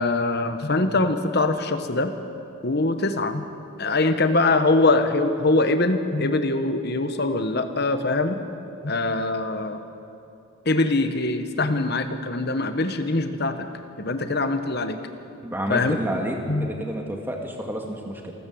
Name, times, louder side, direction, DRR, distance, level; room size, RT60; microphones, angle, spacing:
voice 1, 0.0-2.1 2.6-3.4 3.8-8.4 8.8-9.8 10.6-13.7 14.0-15.0 15.7-16.0 16.5-16.7, left 2 dB, 45° left, 8 dB, 1.2 m, -23 dB
voice 2, 15.4-18.3, right 1 dB, 10° right, 1 dB, 2.1 m, -30 dB
27.0 x 13.0 x 7.8 m, 2.7 s
head